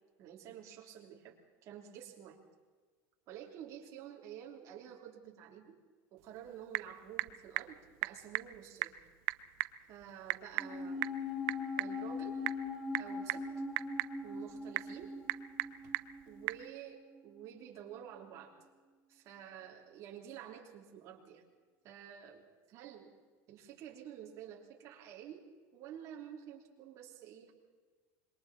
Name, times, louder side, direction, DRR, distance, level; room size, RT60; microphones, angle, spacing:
voice 1, 0.2-2.4 3.3-5.8 6.1-8.9 9.9-11.1 11.8-12.4 13.0-13.7 14.2-15.1 15.8-15.9 16.2-18.5 19.1-21.4 21.8-22.4 22.7-23.1 23.5-25.4 25.7-27.5, right 10 dB, 45° right, -1 dB, 3.4 m, -50 dB
Typing / Telephone, 6.2-16.7, right 20 dB, 65° right, 0.6 m, -40 dB
sound 1, 10.6-17.2 17.4-17.5, left 3 dB, 5° right, 2.0 m, -41 dB
26.5 x 22.5 x 4.4 m, 1.4 s
cardioid pair, 165°, 8 cm